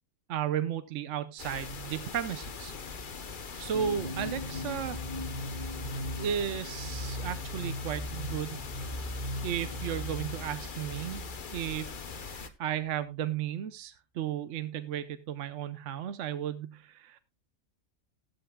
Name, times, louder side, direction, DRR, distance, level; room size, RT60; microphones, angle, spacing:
voice 1, 0.3-2.7 3.6-5.0 6.2-8.6 9.4-11.2 11.5-11.9 12.2-17.2, right 9 dB, 65° right, 11 dB, 1.1 m, -34 dB
sound 1, 1.4-12.5, left 5 dB, 40° left, 1.0 m, -42 dB
sound 2, 3.7-12.3, equal, 35° right, 2.2 m, -38 dB
16.0 x 12.0 x 2.3 m, 0.25 s
omnidirectional pair, 1.4 m